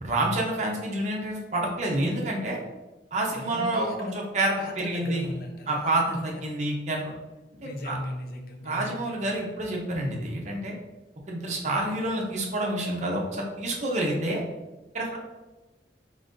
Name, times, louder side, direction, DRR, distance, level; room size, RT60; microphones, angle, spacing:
voice 1, 0.0-2.6 3.1-5.3 5.7-7.1 7.6-8.0 8.6-10.7 11.3-14.4 14.9-15.2, right 1 dB, 40° right, -1 dB, 0.7 m, -28 dB
voice 2, 3.3-4.2 4.6-6.2 7.6-9.2 11.9-12.2, left 1 dB, 55° left, 3 dB, 0.6 m, -37 dB
3.9 x 3.8 x 2.5 m, 1.1 s
head